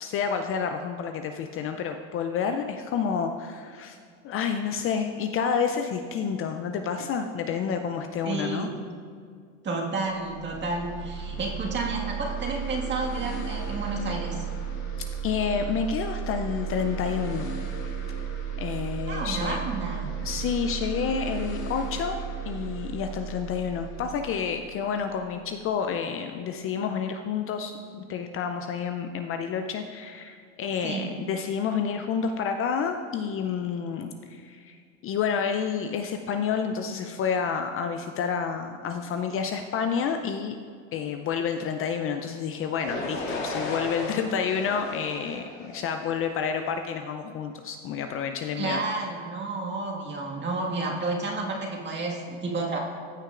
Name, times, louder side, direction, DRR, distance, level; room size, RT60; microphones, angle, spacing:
voice 1, 0.0-4.0 4.2-8.7 15.2-17.5 18.6-19.6 20.2-22.2 22.4-34.8 35.0-40.6 40.9-48.8, left 6 dB, 35° left, 6 dB, 0.5 m, -29 dB
voice 2, 8.2-8.7 9.6-14.4 19.1-20.1 30.8-31.1 48.6-52.8, right 3 dB, 30° right, -1 dB, 1.8 m, -31 dB
sound 1, 10.1-25.6, right 7 dB, 60° left, 1.9 m, -34 dB
sound 2, 42.8-46.7, left 2 dB, 85° left, 2.1 m, -35 dB
15.0 x 6.2 x 2.5 m, 2.2 s
hypercardioid pair, 100°, 38 cm